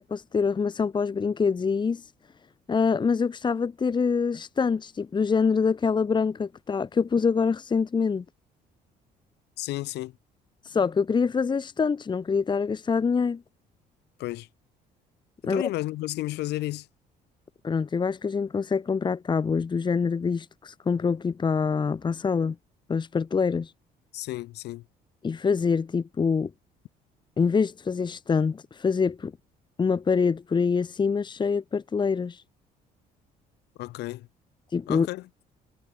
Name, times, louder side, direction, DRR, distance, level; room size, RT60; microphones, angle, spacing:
voice 1, 0.0-2.0 2.7-8.2 10.6-13.4 15.4-15.7 17.6-22.6 22.9-23.7 25.2-26.5 27.4-29.3 29.8-32.4 34.7-35.1, left 5 dB, 25° left, 1.3 m, -25 dB
voice 2, 9.6-10.2 14.2-14.5 15.4-16.9 24.1-24.8 33.8-34.3 34.9-35.5, left 17 dB, 80° left, 5.0 m, -32 dB
cardioid pair, 110°, 17 cm